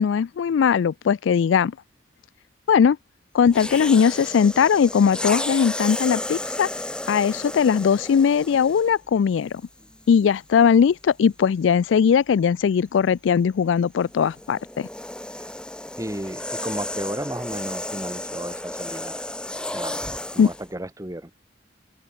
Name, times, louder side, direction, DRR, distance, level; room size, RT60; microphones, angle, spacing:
voice 1, 0.0-1.7 2.7-3.0 3.3-6.7 7.1-9.6 10.1-14.9 20.4-20.5, left 7 dB, 80° left, 0.3 m, -19 dB
sound 1, 3.5-9.0 9.8-10.0 14.0-20.7, left 1 dB, 5° left, 0.6 m, -33 dB
voice 2, 16.0-19.2 19.7-20.1 20.3-21.3, right 1 dB, 15° right, 1.4 m, -33 dB
head